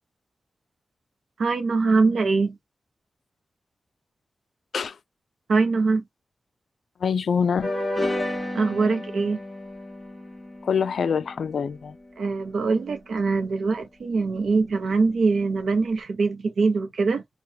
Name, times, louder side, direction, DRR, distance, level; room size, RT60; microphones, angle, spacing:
voice 1, 1.4-2.6 5.5-6.0 8.5-9.4 12.2-17.2, right 4 dB, 85° right, 0.7 m, -23 dB
voice 2, 7.0-7.7 10.6-12.0, left 6 dB, 85° left, 0.3 m, -25 dB
sound 1, 7.6-12.5, left 1 dB, 10° left, 1.2 m, -32 dB
2.8 x 2.2 x 2.7 m
wide cardioid pair, 170°, 0 cm